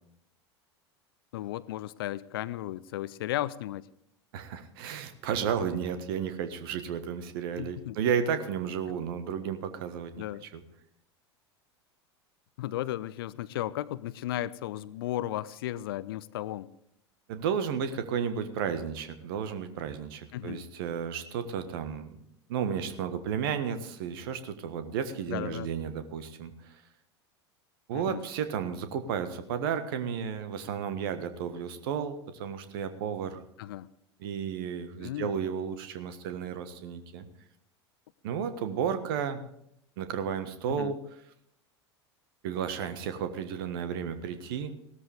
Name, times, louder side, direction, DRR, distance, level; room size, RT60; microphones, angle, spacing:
voice 1, 1.3-3.8 7.6-8.0 10.2-10.4 12.6-16.7 20.3-20.6 25.3-25.7 27.9-28.2 33.6-33.9 35.0-35.4 40.7-41.0, left 14 dB, 55° left, 18 dB, 0.6 m, -35 dB
voice 2, 4.3-10.2 10.5-10.6 17.3-22.2 22.5-26.8 27.9-33.4 34.2-37.3 38.2-39.4 40.0-41.0 42.4-44.8, right 7 dB, 55° right, 10 dB, 1.5 m, -33 dB
17.0 x 13.0 x 3.5 m, 0.74 s
figure-of-eight pair, 80°, 14 cm